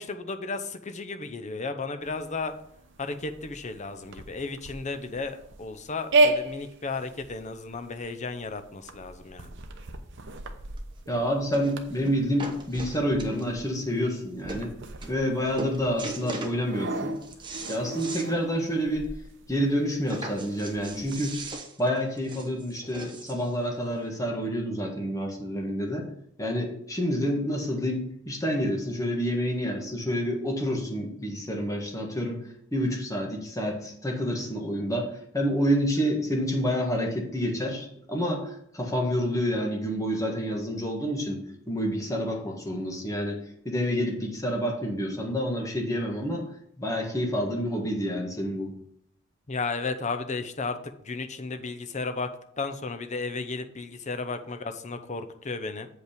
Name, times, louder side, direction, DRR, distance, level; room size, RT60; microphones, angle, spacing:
voice 1, 0.0-2.5 3.0-9.5 49.5-50.8 51.0-52.3 52.6-55.9, left 3 dB, 35° left, 8 dB, 0.7 m, -34 dB
sound 1, 2.0-21.5, right 2 dB, 60° right, 0.9 m, -34 dB
sound 2, 10.8-10.9 11.5-11.8 12.0-13.7 14.2-14.3 14.5-14.7 15.0-15.3 15.6-16.6 17.0-18.3 18.7-18.8 19.1-19.2 20.1-23.5 24.4-24.5, right 2 dB, 25° right, 1.0 m, -39 dB
voice 2, 11.1-14.7 15.1-17.1 17.7-19.1 19.5-21.4 21.8-26.1 26.4-32.4 32.7-41.4 41.7-43.4 43.6-46.4 46.8-48.7, equal, 15° left, 0 dB, 1.5 m, -28 dB
7.9 x 5.4 x 5.1 m, 0.71 s
head